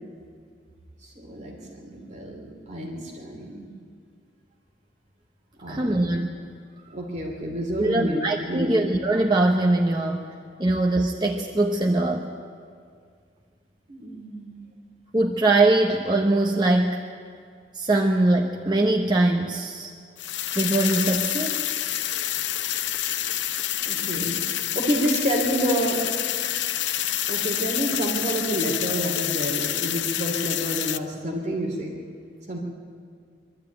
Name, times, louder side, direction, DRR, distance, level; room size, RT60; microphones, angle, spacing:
voice 1, 1.0-3.7 5.6-6.0 6.9-8.8 13.9-14.7 23.9-24.4 24.7-26.0 27.3-32.0 32.5-32.6, right 1 dB, 40° right, 0 dB, 2.8 m, -29 dB
voice 2, 5.7-6.3 7.8-10.2 10.6-12.3 15.1-17.0 17.7-19.9 20.5-21.6, right 2 dB, 25° right, 0 dB, 0.9 m, -22 dB
sound 1, 20.2-31.0, left 11 dB, 85° left, 0.6 m, -27 dB
23.0 x 12.5 x 9.2 m, 2.2 s
head